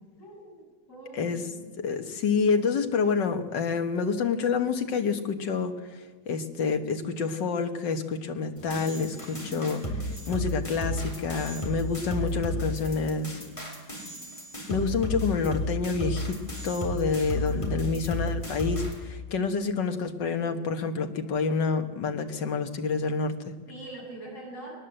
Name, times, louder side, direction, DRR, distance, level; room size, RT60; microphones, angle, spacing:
voice 1, 0.2-1.7 9.3-10.0 11.7-13.2 17.4-18.1 23.7-24.7, equal, 40° left, -2 dB, 8.0 m, -45 dB
voice 2, 1.8-9.8 10.3-13.4 14.7-16.4 16.6-23.5, left 5 dB, 70° left, 6 dB, 2.1 m, -28 dB
sound 1, 8.6-18.9, left 1 dB, 15° left, 4.3 m, -33 dB
21.5 x 19.5 x 7.8 m, 1.4 s
omnidirectional pair, 2.1 m